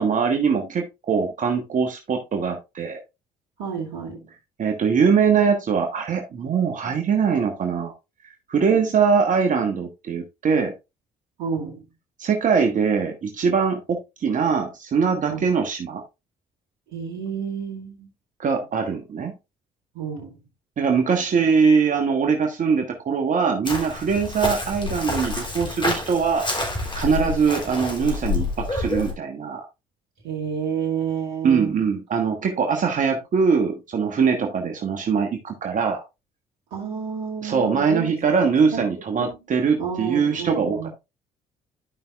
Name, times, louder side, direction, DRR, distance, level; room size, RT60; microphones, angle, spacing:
voice 1, 0.0-3.0 4.6-7.9 8.2-10.7 12.2-16.0 18.4-19.3 20.8-26.5 27.0-29.6 31.4-36.0 37.4-40.8, right 6 dB, 45° right, 1.4 m, -22 dB
voice 2, 3.6-4.3 11.4-11.9 15.3-15.5 16.9-18.1 19.9-20.4 27.1-27.4 30.2-31.8 36.7-38.4 38.7-38.8 39.1-39.4 39.7-40.9, right 7 dB, 75° right, 2.2 m, -30 dB
Chirp tweet, 23.6-29.1, left 3 dB, 25° left, 3.4 m, -28 dB
12.5 x 5.4 x 2.4 m
hypercardioid pair, 55°, 18 cm